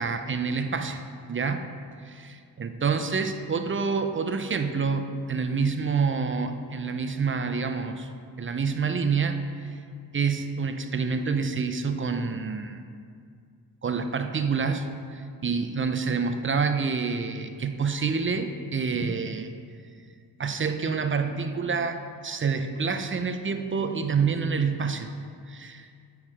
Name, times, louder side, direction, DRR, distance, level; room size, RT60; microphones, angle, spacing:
voice 1, 0.0-1.7 2.0-8.1 8.4-9.7 10.1-12.8 13.8-14.9 15.1-19.5 20.4-25.1 25.5-25.9, right 5 dB, 30° right, 7 dB, 0.5 m, -27 dB
8.8 x 4.7 x 4.8 m, 2.2 s
cardioid pair, 85°, 41 cm